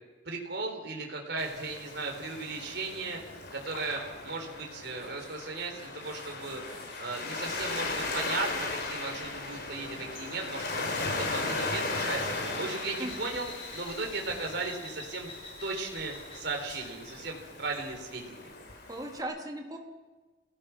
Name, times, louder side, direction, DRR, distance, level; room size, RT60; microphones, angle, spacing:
voice 1, 0.3-3.2 3.5-10.6 11.3-15.3 15.6-18.5, right 3 dB, 60° right, 2 dB, 4.1 m, -36 dB
Waves surf, 1.4-19.2, left 3 dB, 55° left, 3.9 m, -37 dB
sound 1, 4.3-18.9, left 2 dB, 30° left, 5.4 m, -50 dB
voice 2, 13.0-13.4 18.9-19.8, right 1 dB, 20° right, 2 dB, 2.8 m, -38 dB
27.0 x 17.5 x 6.0 m, 1.3 s
head